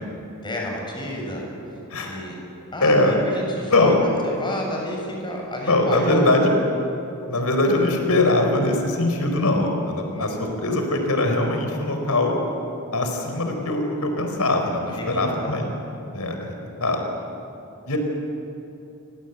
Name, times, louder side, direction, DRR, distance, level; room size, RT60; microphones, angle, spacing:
voice 1, 0.4-1.4 2.0-2.4 2.7-2.9 3.3-6.5 10.1-10.4 14.9-15.7, equal, 20° left, -1 dB, 7.5 m, -30 dB
voice 2, 1.9-2.2 2.8-3.2 3.7-4.0 5.6-6.5 7.3-12.4 12.9-15.7 16.1-17.0 17.9-18.0, left 2 dB, 85° left, 4 dB, 4.3 m, -21 dB
29.5 x 24.5 x 8.1 m, 2.9 s
head